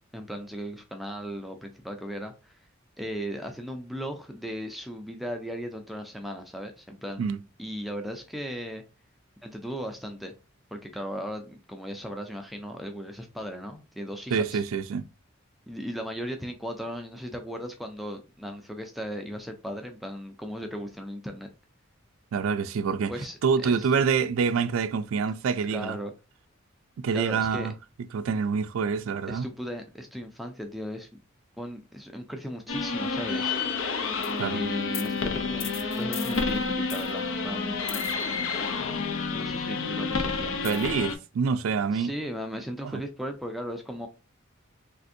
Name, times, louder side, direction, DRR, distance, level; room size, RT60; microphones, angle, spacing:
voice 1, 0.1-2.6 3.0-7.3 7.6-8.8 9.4-10.3 10.7-14.6 15.7-21.5 23.1-23.9 25.7-26.1 27.1-27.7 29.3-31.2 31.6-33.6 34.5-37.8 39.3-40.6 41.9-44.1, equal, ahead, 0.4 m, -37 dB
voice 2, 14.3-15.1 22.3-23.1 23.4-26.0 27.0-27.7 28.1-29.5 34.4-34.6 40.6-42.1 42.9-43.0, right 5 dB, 80° right, 0.4 m, -26 dB
sound 1, 32.7-41.2, left 4 dB, 70° left, 0.5 m, -29 dB
3.4 x 2.5 x 2.5 m
head